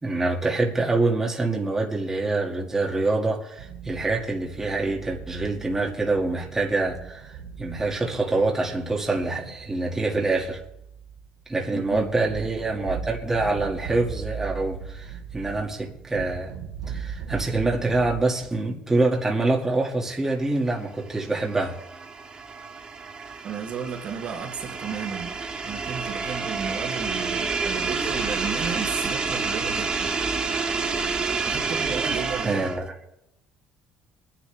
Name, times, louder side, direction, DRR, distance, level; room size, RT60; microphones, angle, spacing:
voice 1, 0.0-10.6 11.5-16.5 16.9-21.8 32.4-32.9, right 2 dB, 15° right, -2 dB, 2.2 m, -25 dB
sound 1, 3.6-18.2, right 7 dB, 90° right, 1.4 m, -39 dB
voice 2, 11.7-12.1 23.4-25.3 25.6-30.1 31.5-32.6, right 6 dB, 50° right, 1 dB, 2.4 m, -33 dB
sound 2, 21.0-32.9, right 4 dB, 30° right, 1.5 m, -29 dB
22.5 x 10.0 x 3.5 m, 0.84 s
cardioid pair, 110°, 3 cm